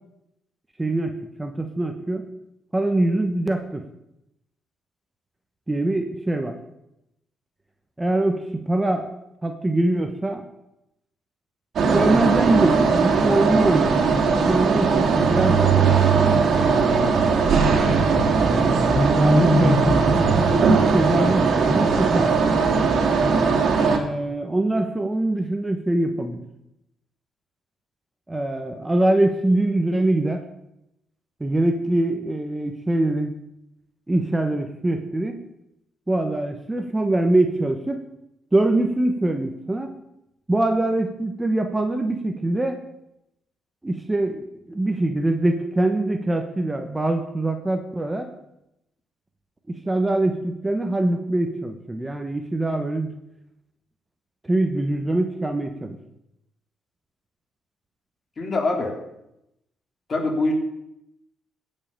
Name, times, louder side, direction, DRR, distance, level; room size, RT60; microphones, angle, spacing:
voice 1, 0.8-2.2 2.7-3.8 5.7-6.6 8.0-9.1 9.4-10.5 11.9-16.3 16.6-17.7 18.4-22.3 23.8-26.4 28.3-30.4 31.4-33.3 34.1-35.4 36.1-38.1 38.5-39.9 40.5-42.8 43.8-48.3 49.7-53.1 54.4-56.0, right 2 dB, 15° right, 6 dB, 1.1 m, -23 dB
sound 1, 11.8-24.0, right 4 dB, 60° right, 2.1 m, -19 dB
voice 2, 58.4-59.0 60.1-60.5, left 2 dB, 40° left, 2 dB, 2.9 m, -23 dB
16.5 x 5.5 x 6.8 m, 0.85 s
cardioid pair, 90°, 0 cm